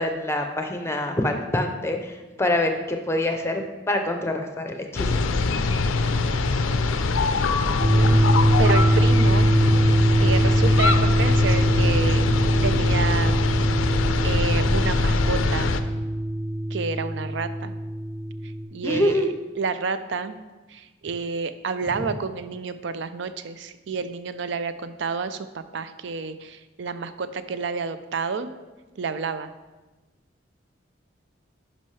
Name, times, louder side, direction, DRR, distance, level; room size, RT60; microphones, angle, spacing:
voice 1, 0.0-5.2 18.8-19.3, left 1 dB, 15° left, 5 dB, 0.6 m, -25 dB
sound 1, 5.0-15.8, left 3 dB, 90° left, 0.5 m, -23 dB
voice 2, 7.6-8.2 8.6-9.5 10.2-12.2 12.6-13.4 14.2-15.8 16.7-17.8 18.7-19.2 19.6-20.4 20.7-28.5 29.0-29.5, right 5 dB, 65° right, 12 dB, 0.4 m, -29 dB
sound 2, 7.8-18.6, equal, 35° right, 1.5 m, -22 dB
11.0 x 5.3 x 3.2 m, 1.2 s
head